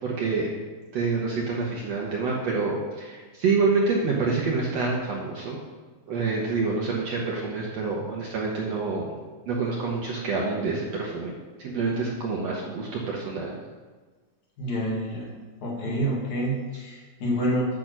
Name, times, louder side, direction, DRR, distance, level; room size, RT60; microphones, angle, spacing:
voice 1, 0.0-0.5 0.9-5.6 6.1-9.2 9.5-11.3 11.6-13.6, right 4 dB, 65° right, -3 dB, 1.8 m, -27 dB
voice 2, 14.6-15.3 15.6-17.8, right 1 dB, 60° left, -3 dB, 3.1 m, -28 dB
8.6 x 6.1 x 6.1 m, 1.4 s
omnidirectional pair, 4.0 m